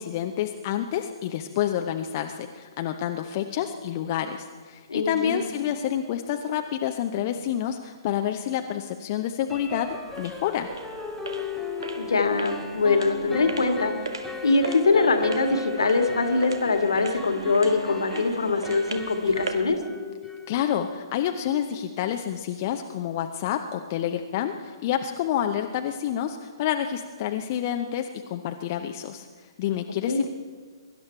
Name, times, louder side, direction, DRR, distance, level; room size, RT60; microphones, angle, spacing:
voice 1, 0.0-10.7 20.5-29.3 29.6-30.3, left 10 dB, 35° left, 5 dB, 0.7 m, -28 dB
voice 2, 4.9-5.5 12.0-13.9 14.4-19.8 30.1-30.2, left 3 dB, 65° left, 6 dB, 1.7 m, -23 dB
sound 1, 6.0-6.2 6.5-6.6 9.5-21.0, left 3 dB, 5° left, 0.9 m, -37 dB
sound 2, 9.5-19.8, right 3 dB, 65° right, 1.6 m, -38 dB
23.0 x 12.0 x 4.5 m, 1.5 s
figure-of-eight pair, 125°, 3 cm